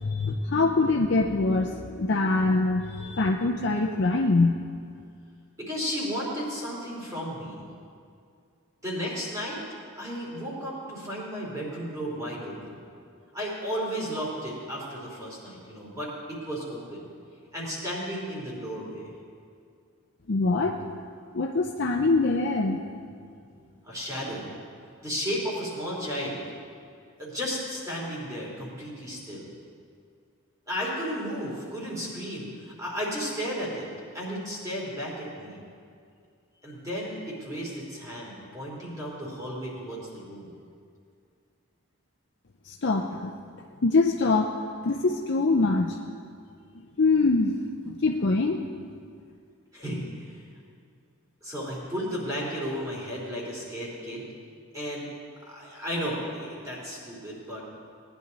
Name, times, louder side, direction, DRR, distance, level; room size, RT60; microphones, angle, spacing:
voice 1, 0.0-4.6 20.3-20.8 21.3-22.8 42.7-43.3 43.8-44.5 44.8-46.0 47.0-47.6 48.0-48.6, left 3 dB, 50° left, 2 dB, 0.6 m, -24 dB
voice 2, 5.6-7.7 8.8-9.6 10.0-12.8 13.3-17.1 17.5-19.1 23.8-24.5 25.0-26.5 27.2-29.5 30.7-33.9 34.1-35.6 36.6-40.5 49.7-50.4 51.4-54.3 54.7-55.1 55.4-57.6, equal, 15° right, -5 dB, 3.2 m, -34 dB
19.0 x 10.5 x 4.1 m, 2.3 s
head